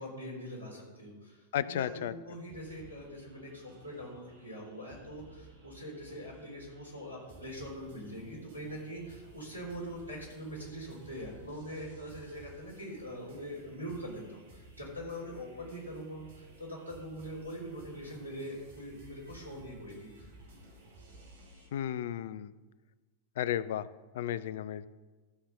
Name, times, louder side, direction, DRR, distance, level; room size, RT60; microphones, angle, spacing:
voice 1, 0.0-20.3, equal, 85° right, -2 dB, 3.8 m, -43 dB
voice 2, 1.5-2.1 21.7-22.5 23.4-23.9 24.1-24.9, left 10 dB, 55° left, 17 dB, 0.4 m, -33 dB
sound 1, 2.5-21.7, right 1 dB, 60° right, 2.8 m, -56 dB
13.0 x 5.8 x 6.7 m, 1.3 s
figure-of-eight pair, 90°, 0 cm